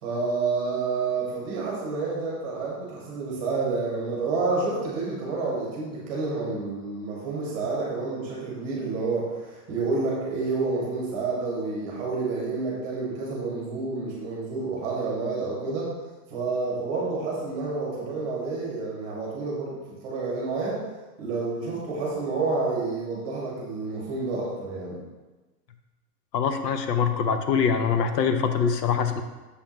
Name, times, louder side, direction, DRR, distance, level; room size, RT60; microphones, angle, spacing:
voice 1, 0.0-15.9 16.3-20.9 21.2-25.0, right 3 dB, 20° right, -4 dB, 1.1 m, -29 dB
voice 2, 26.3-29.2, left 6 dB, 90° left, 8 dB, 0.8 m, -24 dB
6.5 x 5.3 x 2.9 m, 1.2 s
supercardioid pair, 180°, 48 cm